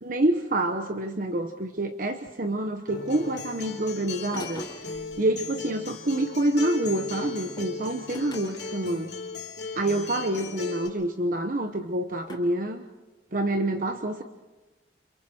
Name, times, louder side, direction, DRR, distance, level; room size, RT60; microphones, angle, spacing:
voice 1, 0.0-9.1 9.8-12.8 13.3-14.2, right 1 dB, 50° right, 6 dB, 1.1 m, -27 dB
Acoustic guitar, 2.9-10.9, left 4 dB, 70° left, 2.9 m, -37 dB
sound 1, 2.9-3.7 4.3-5.1 7.4-8.8 9.8-9.9 10.7-10.8 12.3-12.4, left 1 dB, 25° left, 3.6 m, -43 dB
30.0 x 27.0 x 4.5 m, 1.1 s
head